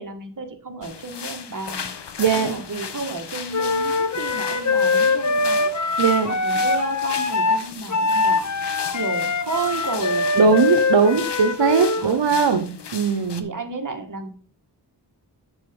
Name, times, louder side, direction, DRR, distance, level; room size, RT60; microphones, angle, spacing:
voice 1, 0.0-1.9 2.3-5.7 6.3-8.5 8.9-10.5 12.0-12.3 13.4-14.3, right 3 dB, 50° right, 4 dB, 2.0 m, -32 dB
sound 1, 0.8-13.4, left 7 dB, 75° left, 1.1 m, -36 dB
voice 2, 2.2-2.6 6.0-6.3 10.4-12.7 12.9-13.5, right 5 dB, 85° right, 6 dB, 1.0 m, -19 dB
Wind instrument woodwind instrument, 3.5-12.1, left 3 dB, 45° left, 1.0 m, -23 dB
7.3 x 7.1 x 5.4 m, 0.43 s
wide cardioid pair, 80°, 41 cm